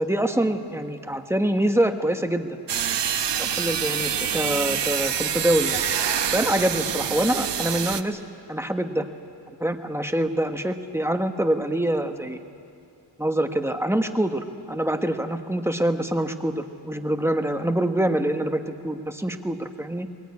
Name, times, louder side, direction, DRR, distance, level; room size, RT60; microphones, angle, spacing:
voice 1, 0.0-2.6 3.4-5.8 6.3-8.2 8.5-9.1 9.6-12.4 13.2-20.1, right 1 dB, 5° right, 6 dB, 1.2 m, -25 dB
sound 1, 2.7-8.0, right 8 dB, 65° right, 1.0 m, -26 dB
21.5 x 20.0 x 9.7 m, 2.5 s
wide cardioid pair, 100°, 45 cm